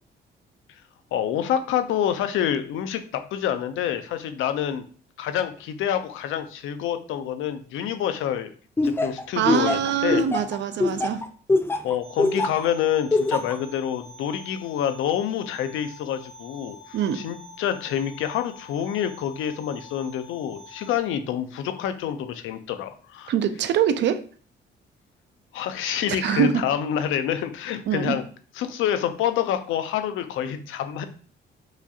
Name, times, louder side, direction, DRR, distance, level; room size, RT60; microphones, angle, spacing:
voice 1, 1.1-4.8 5.2-8.5 8.8-10.2 11.8-23.3 25.5-28.2 28.6-31.0, left 9 dB, 85° left, 10 dB, 0.5 m, -27 dB
Laughter, 8.8-12.6 13.1-13.6, left 2 dB, 10° left, 0.4 m, -23 dB
voice 2, 9.4-11.2 16.9-17.2 23.3-24.2 26.1-26.7 27.9-28.2, right 9 dB, 65° right, 11 dB, 0.5 m, -24 dB
sound 1, 12.0-21.0, left 3 dB, 30° right, 1.3 m, -46 dB
4.9 x 2.7 x 2.4 m, 0.43 s
cardioid pair, 90°, 20 cm